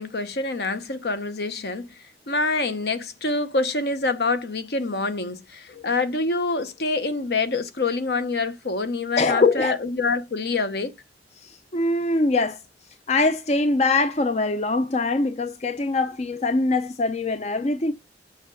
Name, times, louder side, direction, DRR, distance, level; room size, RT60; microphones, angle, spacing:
voice 1, 0.0-1.9 2.3-10.9, left 3 dB, 60° left, 1.0 m, -26 dB
voice 2, 9.2-9.8 11.4-12.6 13.1-17.9, left 3 dB, 40° left, 0.5 m, -23 dB
7.1 x 4.9 x 7.0 m
head